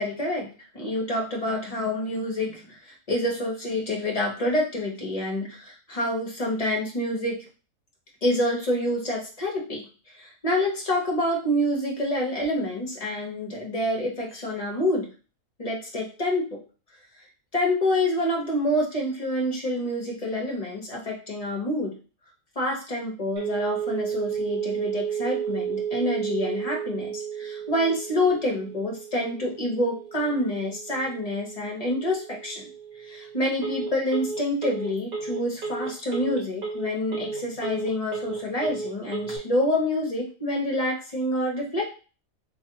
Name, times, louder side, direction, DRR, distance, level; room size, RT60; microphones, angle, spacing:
voice 1, 0.0-7.4 8.2-9.9 10.2-15.1 15.6-16.6 17.5-21.9 22.5-32.7 33.1-41.9, left 1 dB, 30° left, -1 dB, 1.0 m, -27 dB
Telephone, 23.4-39.4, right 6 dB, 90° right, 1.6 m, -33 dB
3.2 x 3.2 x 2.8 m, 0.35 s
omnidirectional pair, 1.5 m